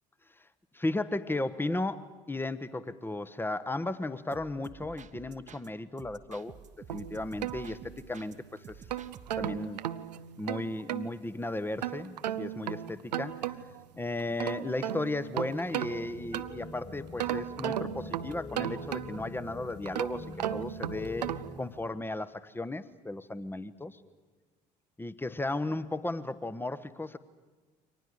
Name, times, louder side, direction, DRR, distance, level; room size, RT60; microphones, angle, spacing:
voice 1, 0.7-6.5 6.9-7.8 8.1-8.7 9.4-9.8 10.4-13.4 14.0-21.2 21.6-24.0 25.0-27.2, left 2 dB, 10° left, 13 dB, 1.3 m, -35 dB
sound 1, 4.3-5.7 6.0-8.3 8.6-9.6, right 7 dB, 35° right, 1.3 m, -50 dB
sound 2, 6.9-8.2 8.7-11.1 11.8-13.8 14.2-16.7 17.2-19.4 19.9-21.6, right 11 dB, 75° right, 0.7 m, -36 dB
sound 3, 11.3-21.3, left 3 dB, 30° left, 3.4 m, -46 dB
29.5 x 25.0 x 6.7 m, 1.3 s
figure-of-eight pair, 55°, 21 cm